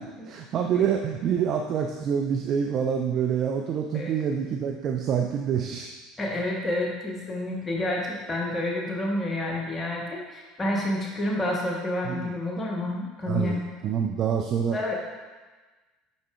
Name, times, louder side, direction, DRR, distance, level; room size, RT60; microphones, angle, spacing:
voice 1, 0.2-5.9 12.0-12.3 13.3-14.9, right 7 dB, 40° right, 2 dB, 0.4 m, -27 dB
voice 2, 6.2-13.6 14.7-14.9, left 1 dB, 25° left, -1 dB, 1.0 m, -29 dB
8.3 x 5.4 x 2.4 m, 1.3 s
figure-of-eight pair, 65°, 0 cm